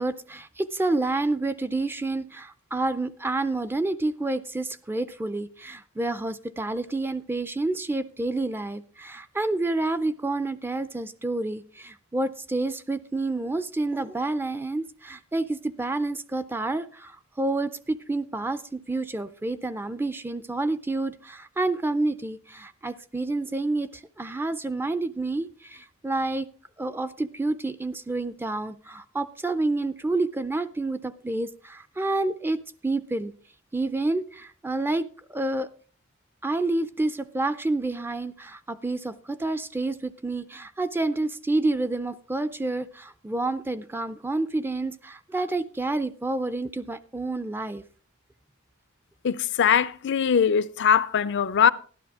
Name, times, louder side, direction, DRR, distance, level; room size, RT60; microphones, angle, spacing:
voice 1, 0.0-26.5 26.8-33.3 33.7-35.7 36.4-47.8, right 2 dB, 10° right, 0.4 m, -29 dB
voice 2, 49.2-51.7, left 7 dB, 55° left, 0.4 m, -21 dB
13.0 x 11.5 x 3.6 m
head